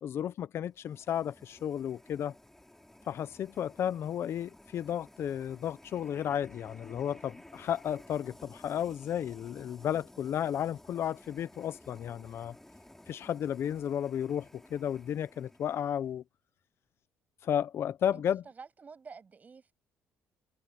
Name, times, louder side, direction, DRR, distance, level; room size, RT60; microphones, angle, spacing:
voice 1, 0.0-2.3 3.1-12.5 13.1-16.2 17.4-18.4, left 9 dB, 60° left, 0.9 m, -33 dB
sound 1, 0.7-16.1, left 1 dB, 5° left, 3.2 m, -55 dB
voice 2, 18.1-19.7, right 5 dB, 35° right, 7.7 m, -49 dB
cardioid pair, 95°, 5 cm